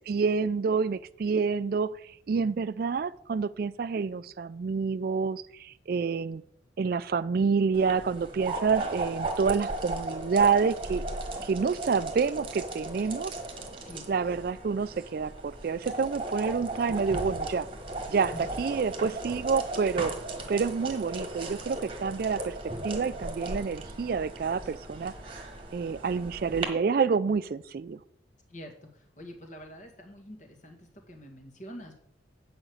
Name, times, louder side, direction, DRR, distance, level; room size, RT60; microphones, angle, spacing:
voice 1, 0.1-6.4 6.8-11.0 11.4-13.4 14.1-17.7 18.1-20.2 20.5-25.1 25.7-28.0, right 5 dB, 50° right, 0.3 m, -28 dB
sound 1, 7.7-26.6, right 2 dB, 30° right, 1.3 m, -36 dB
voice 2, 28.5-28.9 29.2-32.0, equal, 40° left, 1.9 m, -46 dB
8.9 x 5.2 x 7.8 m
head